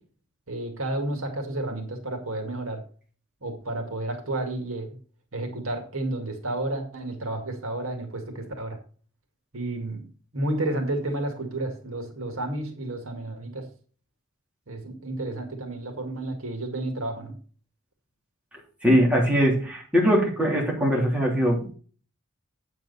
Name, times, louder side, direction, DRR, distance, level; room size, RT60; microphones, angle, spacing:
voice 1, 0.5-2.8 3.4-5.0 5.3-8.8 9.5-10.0 10.3-13.7 14.7-17.4, right 1 dB, 85° right, 5 dB, 2.1 m, -31 dB
voice 2, 18.8-21.8, equal, 5° right, -3 dB, 3.2 m, -21 dB
8.6 x 7.8 x 4.1 m, 0.40 s
head